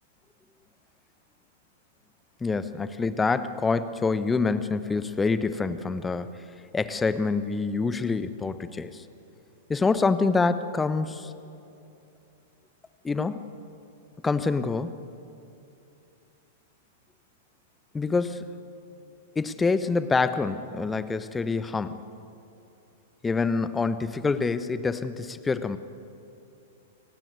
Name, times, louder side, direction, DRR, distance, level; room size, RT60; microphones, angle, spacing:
voice 1, 2.4-6.4 6.7-9.0 9.7-11.3 13.0-13.5 14.2-14.9 17.9-18.5 19.3-22.0 23.2-25.8, left 4 dB, 10° left, 13 dB, 1.0 m, -26 dB
28.5 x 16.5 x 8.1 m, 2.7 s
figure-of-eight pair, 100°, 0 cm